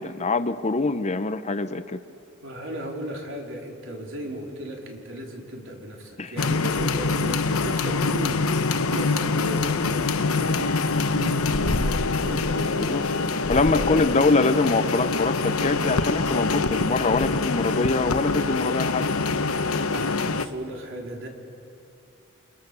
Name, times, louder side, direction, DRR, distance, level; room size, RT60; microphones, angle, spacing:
voice 1, 0.0-2.0 6.2-6.3 12.8-13.0 13.5-19.0, left 3 dB, 30° left, 12 dB, 0.8 m, -24 dB
voice 2, 2.4-8.4 8.9-10.0 10.3-13.8 14.3-14.4 19.8-21.3, right 1 dB, 65° right, 0 dB, 4.5 m, -36 dB
sound 1, 6.4-20.5, left 3 dB, 90° left, 1.1 m, -24 dB
29.5 x 27.5 x 7.0 m, 2.7 s
head